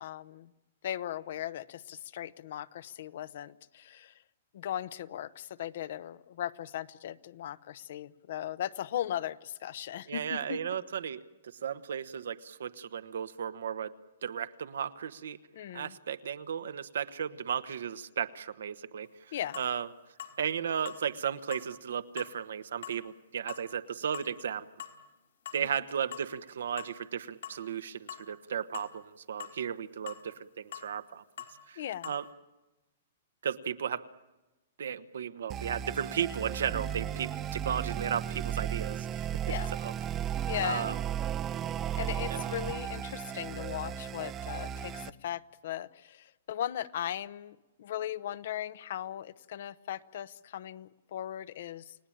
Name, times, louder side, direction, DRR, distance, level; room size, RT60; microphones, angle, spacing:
voice 1, 0.0-0.5 0.8-4.1 4.5-10.6 15.5-15.9 19.3-19.6 25.6-25.7 31.8-32.1 39.5-39.7 40.5-41.0 42.0-52.0, left 11 dB, 60° left, 16 dB, 0.9 m, -38 dB
voice 2, 10.1-13.9 14.2-15.4 15.7-19.1 19.6-19.9 20.4-24.7 25.5-31.2 31.7-32.3 33.4-34.0 34.8-39.9 40.6-41.0 42.3-42.5, right 8 dB, 80° right, 11 dB, 1.2 m, -35 dB
sound 1, 19.0-19.1 19.5-19.7 20.2-20.4 20.8-21.0 21.5-21.7 22.2-22.3 22.8-23.0 23.5-23.6 24.1-24.3 24.8-25.0 25.5-25.6 26.1-26.3 26.8-27.0 27.4-27.6 28.1-28.2 28.7-28.9 29.4-29.6 30.1-30.2 30.7-30.9 31.4-31.6 32.0-32.2, left 10 dB, 80° left, 4.4 m, -43 dB
sound 2, 35.5-45.1, right 9 dB, 25° right, 0.8 m, -35 dB
29.5 x 17.5 x 8.8 m, 1.1 s
hypercardioid pair, 140°, 0 cm